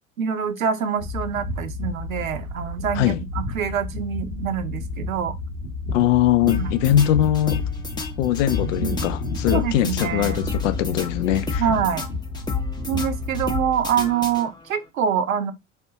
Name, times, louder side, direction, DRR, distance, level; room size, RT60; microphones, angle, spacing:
voice 1, 0.2-5.3 6.4-6.8 9.5-10.5 11.6-12.1 12.9-15.5, right 8 dB, 90° right, 0.6 m, -25 dB
sound 1, 1.0-13.6, left 2 dB, 90° left, 1.2 m, -31 dB
voice 2, 5.9-7.6 8.2-11.6, left 12 dB, 70° left, 0.5 m, -21 dB
sound 2, 6.5-14.8, left 4 dB, 10° left, 0.6 m, -31 dB
3.4 x 2.4 x 2.7 m
hypercardioid pair, 80°, 40 cm